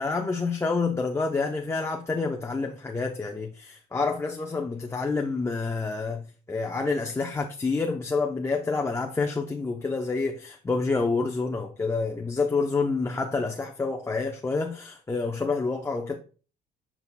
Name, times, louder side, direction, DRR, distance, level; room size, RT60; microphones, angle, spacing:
voice 1, 0.0-16.1, left 4 dB, 15° left, 0.6 m, -28 dB
8.0 x 5.6 x 2.2 m
cardioid pair, 110°, 17 cm